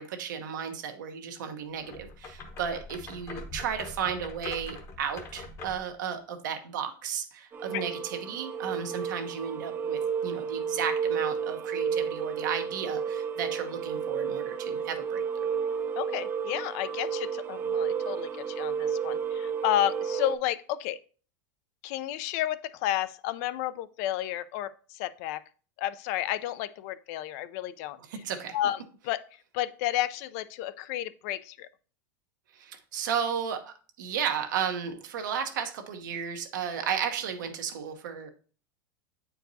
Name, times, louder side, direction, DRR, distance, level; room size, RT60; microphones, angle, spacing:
voice 1, 0.0-15.2 28.1-28.5 32.5-38.3, right 7 dB, 85° right, 6 dB, 1.0 m, -34 dB
sound 1, 1.8-5.9, left 3 dB, 30° left, 0.9 m, -43 dB
sound 2, 7.5-20.4, right 7 dB, 20° right, 0.4 m, -32 dB
voice 2, 16.0-21.0 21.8-25.4 25.8-28.0 28.5-29.2 29.5-31.7, left 13 dB, 55° left, 15 dB, 0.4 m, -31 dB
8.0 x 4.6 x 2.6 m, 0.39 s
supercardioid pair, 145°, 10 cm